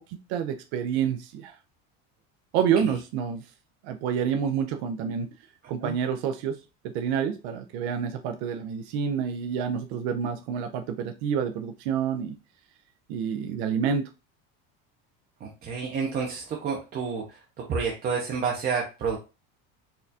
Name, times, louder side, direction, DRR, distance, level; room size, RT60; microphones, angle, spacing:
voice 1, 0.1-1.6 2.5-3.4 3.8-5.3 5.7-6.6 6.8-12.4 13.1-14.1, right 7 dB, 85° right, 6 dB, 0.5 m, -28 dB
voice 2, 15.4-19.2, right 5 dB, 30° right, -1 dB, 0.6 m, -30 dB
4.3 x 2.3 x 2.7 m, 0.30 s
cardioid pair, 165°, 32 cm